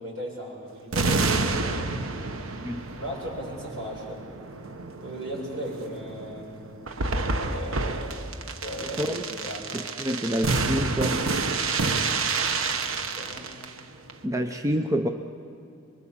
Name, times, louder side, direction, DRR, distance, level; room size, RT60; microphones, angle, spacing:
voice 1, 0.0-2.3 3.0-4.2 5.0-6.6 7.4-8.3 8.6-9.8 13.1-13.5, right 1 dB, 65° right, -3 dB, 7.0 m, -37 dB
sound 1, 0.9-13.8 14.1-14.2, right 3 dB, 85° right, 1.1 m, -29 dB
voice 2, 9.7-11.2 14.2-15.1, equal, 15° right, 5 dB, 0.6 m, -27 dB
24.0 x 22.5 x 7.3 m, 2.4 s
head